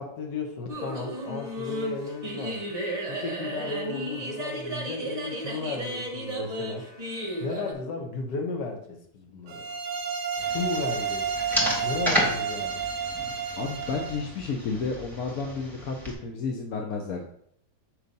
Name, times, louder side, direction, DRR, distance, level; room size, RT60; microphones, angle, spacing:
voice 1, 0.0-2.8 3.1-6.9 7.4-9.7 10.4-11.3 11.8-12.8, left 4 dB, 80° left, 3 dB, 1.8 m, -34 dB
sound 1, 0.7-7.7, right 1 dB, 30° right, 0.9 m, -34 dB
sound 2, 9.5-14.3, right 6 dB, 65° right, 0.9 m, -31 dB
sound 3, 10.4-16.1, equal, ahead, 1.3 m, -32 dB
voice 2, 13.6-17.3, left 4 dB, 65° left, 1 dB, 1.1 m, -31 dB
6.7 x 3.1 x 5.3 m, 0.66 s
omnidirectional pair, 1.8 m